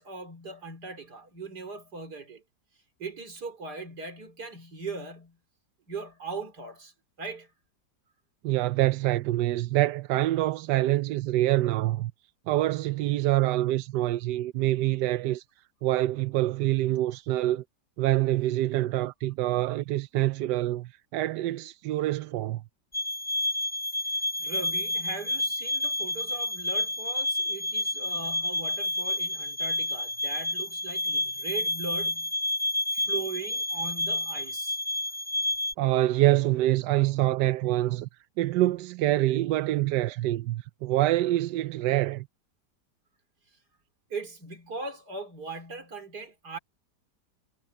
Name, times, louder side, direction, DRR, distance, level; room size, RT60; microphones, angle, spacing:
voice 1, 0.0-2.4 3.0-5.4 5.9-6.9 7.2-7.5 24.1-32.3 32.9-34.8 43.5-43.6 44.1-46.6, right 3 dB, 70° right, 4.3 m, -39 dB
voice 2, 8.4-12.1 12.5-15.4 15.8-17.6 18.0-22.6 35.8-38.1 38.4-42.3, right 15 dB, 90° right, 1.2 m, -26 dB
sound 1, 22.9-35.7, left 1 dB, 20° left, 2.0 m, -30 dB
omnidirectional pair, 1.8 m